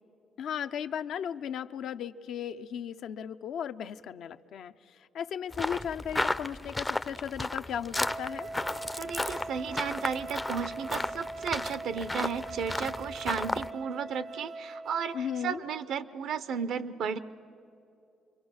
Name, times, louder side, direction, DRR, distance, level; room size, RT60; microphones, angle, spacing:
voice 1, 0.4-8.5 15.1-15.6, left 8 dB, 75° left, 9 dB, 0.6 m, -36 dB
sound 1, 5.5-13.7, left 2 dB, 15° left, 0.5 m, -34 dB
Wind instrument woodwind instrument, 7.9-15.6, right 2 dB, 40° right, 0.5 m, -41 dB
voice 2, 9.0-17.2, right 6 dB, 75° right, 14 dB, 0.7 m, -34 dB
27.5 x 23.0 x 6.3 m, 2.7 s
cardioid pair, 90°, 0 cm